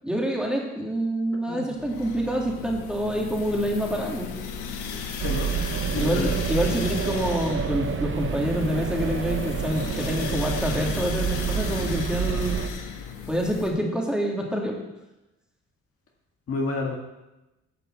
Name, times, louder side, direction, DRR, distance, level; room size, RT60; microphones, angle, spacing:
voice 1, 0.0-4.3 6.0-12.6 13.3-14.7, equal, 5° right, -1 dB, 2.5 m, -27 dB
sound 1, 1.7-13.7, left 6 dB, 90° left, 1.3 m, -35 dB
voice 2, 5.2-5.5 5.9-6.3 16.5-17.0, left 3 dB, 50° left, 0 dB, 1.9 m, -29 dB
sound 2, 5.2-12.7, right 8 dB, 40° right, 0.8 m, -29 dB
10.5 x 5.5 x 7.7 m, 1.0 s
cardioid pair, 90°, 30 cm